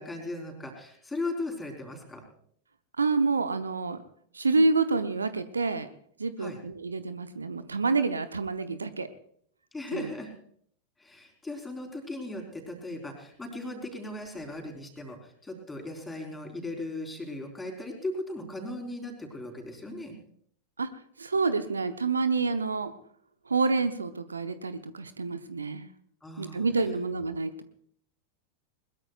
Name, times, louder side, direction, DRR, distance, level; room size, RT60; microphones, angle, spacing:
voice 1, 0.0-2.2 6.4-6.6 9.7-10.3 11.0-20.1 26.2-26.7, left 2 dB, 10° left, 2 dB, 4.1 m, -37 dB
voice 2, 3.0-4.0 4.3-5.9 6.2-9.1 9.9-10.1 20.8-20.9 21.2-22.9 23.5-25.9 26.4-27.5, right 3 dB, 75° right, 11 dB, 0.8 m, -28 dB
21.5 x 21.0 x 2.4 m, 0.63 s
figure-of-eight pair, 90°, 0 cm